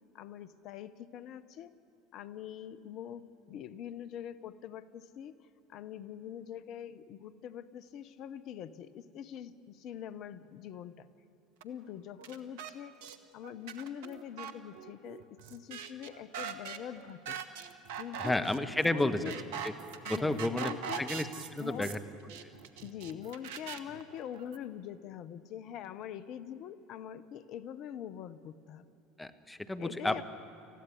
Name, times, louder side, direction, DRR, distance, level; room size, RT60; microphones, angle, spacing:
voice 1, 0.1-1.7 2.1-5.4 5.7-11.1 11.6-13.0 13.3-17.4 18.0-18.4 18.8-19.4 20.0-21.1 21.6-22.0 22.8-28.9 29.8-30.2, left 9 dB, 50° left, 14 dB, 0.9 m, -44 dB
sound 1, 11.6-11.7 12.2-12.7 13.0-13.2 13.4-24.6, right 8 dB, 65° right, 1.1 m, -42 dB
voice 2, 18.2-19.2 19.6-19.7 20.1-20.7 21.0-22.0 29.2-30.2, left 2 dB, 10° left, 9 dB, 1.3 m, -31 dB
20.5 x 14.5 x 9.9 m, 3.0 s
hypercardioid pair, 70°, 0 cm